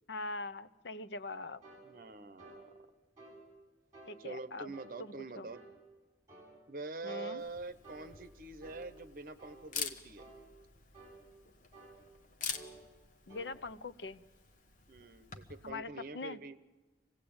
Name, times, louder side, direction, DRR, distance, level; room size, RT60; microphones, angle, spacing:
voice 1, 0.1-1.6 4.1-4.7 5.0-5.5 7.0-7.4 13.3-14.2 15.6-16.4, left 3 dB, 85° left, 15 dB, 0.8 m, -42 dB
sound 1, 1.6-1.9 2.4-2.6 3.2-3.4 3.9-4.2 4.7-4.9 5.5-5.7 6.3-6.5 7.1-7.3 7.8-8.1 8.6-8.9 9.4-9.6 10.2-10.4 10.9-11.2 11.7-12.0 12.5-12.8 13.3-13.5, right 2 dB, 20° right, 7.8 m, -53 dB
voice 2, 1.8-2.7 4.2-5.6 6.7-10.3 14.9-16.6, right 2 dB, 50° right, 12 dB, 1.0 m, -45 dB
Camera, 7.4-15.7, left 5 dB, 45° left, 1.4 m, -47 dB
26.0 x 17.0 x 8.8 m, 1.3 s
head